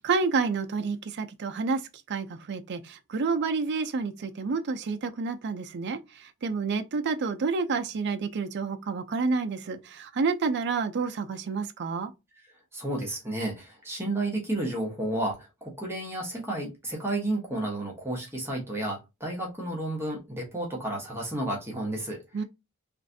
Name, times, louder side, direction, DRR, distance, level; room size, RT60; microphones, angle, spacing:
voice 1, 0.0-1.8 2.1-6.0 6.4-12.1 22.3-22.4, right 4 dB, 50° right, 0.4 m, -29 dB
voice 2, 12.7-22.4, right 1 dB, 10° right, 0.9 m, -32 dB
3.1 x 2.5 x 2.5 m
head